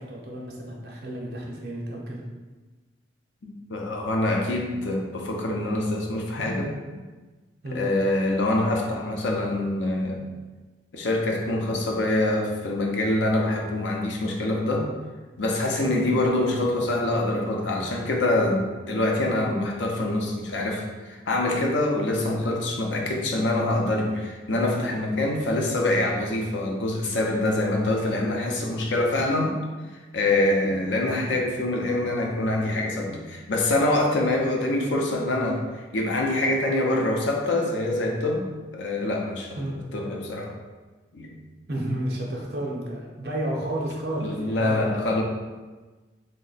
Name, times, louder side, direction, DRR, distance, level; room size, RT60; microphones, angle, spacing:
voice 1, 0.0-2.2 7.6-7.8 15.9-16.0 39.6-39.8 41.7-44.8, right 1 dB, 60° right, -2 dB, 0.7 m, -31 dB
voice 2, 3.4-6.7 7.7-10.3 10.9-14.9 15.4-29.6 29.9-39.6 39.9-40.5 41.1-41.4 44.2-45.2, left 2 dB, 80° left, 1 dB, 0.6 m, -25 dB
3.1 x 2.1 x 3.9 m, 1.3 s
head